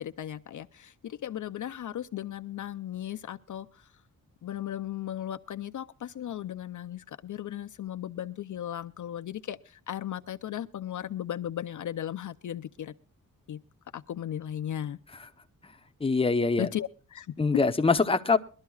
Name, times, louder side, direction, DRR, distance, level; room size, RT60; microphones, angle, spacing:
voice 1, 0.0-3.9 4.4-12.9 13.5-13.6 13.9-15.0 16.6-17.4, left 11 dB, 60° left, 9 dB, 0.6 m, -36 dB
voice 2, 16.0-16.7 17.4-18.4, left 4 dB, 15° left, 7 dB, 0.9 m, -23 dB
22.0 x 12.5 x 2.4 m, 0.40 s
wide cardioid pair, 130°, 35 cm